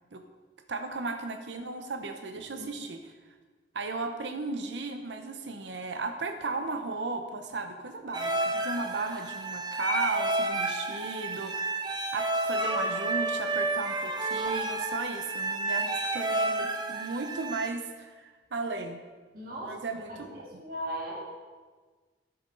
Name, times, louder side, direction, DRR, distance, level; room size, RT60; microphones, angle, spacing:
voice 1, 0.7-3.1 3.7-11.8 12.1-19.0 19.6-20.6, right 3 dB, 70° right, 6 dB, 0.7 m, -35 dB
sound 1, 8.1-17.7, right 2 dB, 25° right, 0.6 m, -30 dB
voice 2, 19.3-19.7 20.1-21.2, right 1 dB, 50° right, -4 dB, 2.1 m, -37 dB
13.0 x 7.1 x 3.8 m, 1.4 s
head